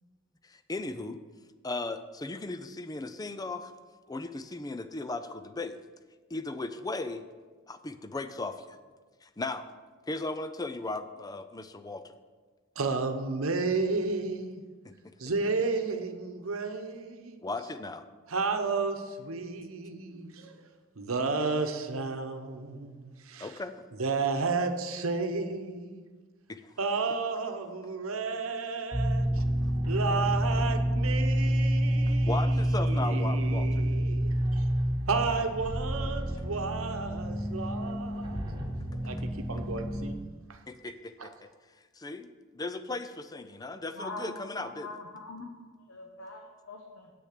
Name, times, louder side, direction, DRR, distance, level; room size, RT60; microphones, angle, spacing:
voice 1, 0.4-1.2 1.6-3.7 4.1-5.8 6.3-7.2 7.7-8.8 9.2-9.7 10.1-12.1 14.8-15.1 17.4-18.1 23.4-23.7 26.5-26.7 32.1-33.8 40.7-41.5 42.0-42.3 42.5-45.0, left 2 dB, 20° left, 11 dB, 0.5 m, -37 dB
voice 2, 12.7-14.6 15.2-17.4 18.3-20.6 21.0-23.6 24.0-26.0 26.8-29.4 29.9-34.7 35.1-38.4 39.0-40.2 40.5-40.6 41.2-41.3, right 4 dB, 85° right, 6 dB, 0.9 m, -32 dB
sound 1, 28.9-40.1, right 1 dB, 20° right, 1.2 m, -28 dB
voice 3, 43.9-44.3 44.6-45.4 45.9-47.1, left 2 dB, 65° left, 1 dB, 1.1 m, -42 dB
8.6 x 6.8 x 6.6 m, 1.4 s
head